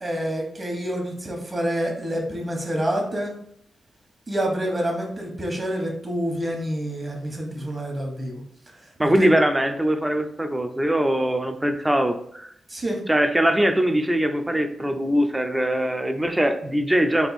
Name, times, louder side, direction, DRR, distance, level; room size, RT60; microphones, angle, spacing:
voice 1, 0.0-3.3 4.3-8.4 9.0-9.4 12.7-13.0, equal, 30° right, 1 dB, 1.2 m, -27 dB
voice 2, 9.0-12.5 13.1-17.3, right 1 dB, 15° right, 7 dB, 0.4 m, -22 dB
3.4 x 2.6 x 4.1 m, 0.71 s
cardioid pair, 80°, 0 cm